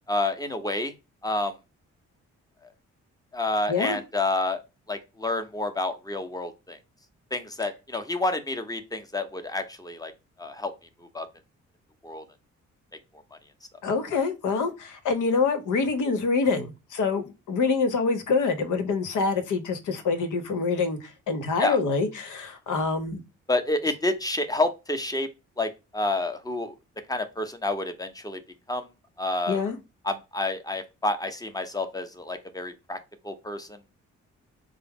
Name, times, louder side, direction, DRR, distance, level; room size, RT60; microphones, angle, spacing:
voice 1, 0.1-0.9 1.2-1.5 3.3-4.6 4.9-6.8 7.3-10.1 10.4-10.7 11.1-11.3 12.0-12.2 13.3-13.4 21.6-21.8 23.5-25.3 25.6-26.7 27.1-28.4 28.7-28.9 29.2-29.6 30.0-33.0 33.2-33.8, left 2 dB, 10° left, 8 dB, 0.8 m, -29 dB
voice 2, 3.7-4.0 13.8-23.2 29.5-29.8, left 4 dB, 75° left, 9 dB, 0.9 m, -26 dB
4.4 x 2.0 x 3.5 m, 0.26 s
supercardioid pair, 50°, 31 cm